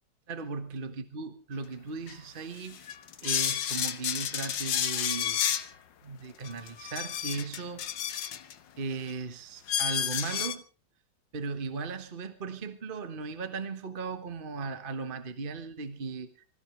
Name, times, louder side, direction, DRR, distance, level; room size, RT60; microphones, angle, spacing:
voice 1, 0.3-2.9 3.2-5.6 6.0-7.9 8.8-10.6 11.3-16.5, right 4 dB, 30° right, 1.4 m, -37 dB
sound 1, 2.1-2.2 2.7-5.7 6.4-8.5 9.1-9.2 9.7-10.5, left 9 dB, 70° left, 1.7 m, -31 dB
25.0 x 15.5 x 3.4 m
omnidirectional pair, 2.1 m